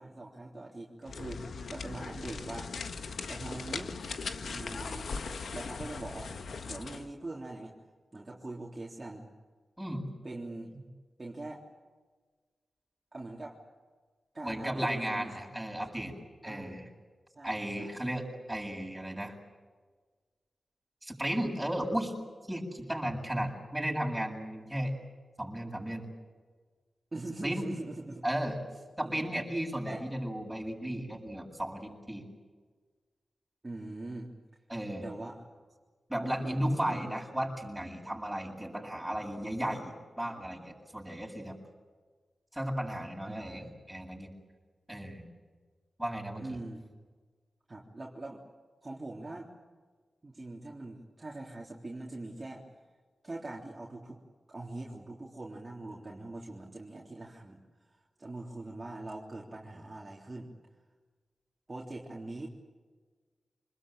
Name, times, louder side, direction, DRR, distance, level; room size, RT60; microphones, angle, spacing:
voice 1, 0.0-1.4 1.7-2.7 3.3-3.9 4.4-5.2 5.5-6.3 6.6-7.7 8.1-9.3 10.2-10.9 11.2-11.7 13.1-13.6 14.3-15.6 16.4-16.8 17.4-18.0 27.1-28.2 29.0-29.3 29.8-30.0 33.6-34.3 35.0-35.4 36.2-37.0 43.3-43.7 46.4-46.8 47.7-48.4 48.8-49.5 50.2-52.6 53.2-54.2 54.5-57.6 57.9-60.5 61.7-62.5, right 2 dB, 30° right, -3 dB, 3.6 m, -42 dB
sound 1, 1.0-7.1, left 4 dB, 75° left, 1.6 m, -39 dB
voice 2, 14.4-16.1 16.4-16.9 17.4-19.4 21.0-22.1 22.4-24.9 25.4-26.1 27.4-27.7 28.2-28.6 29.0-32.2 34.7-35.1 36.1-41.6 42.5-44.3 44.9-45.2 46.0-46.6, right 1 dB, 5° right, 0 dB, 7.8 m, -35 dB
26.5 x 21.0 x 9.1 m, 1.4 s
cardioid pair, 80°, 0 cm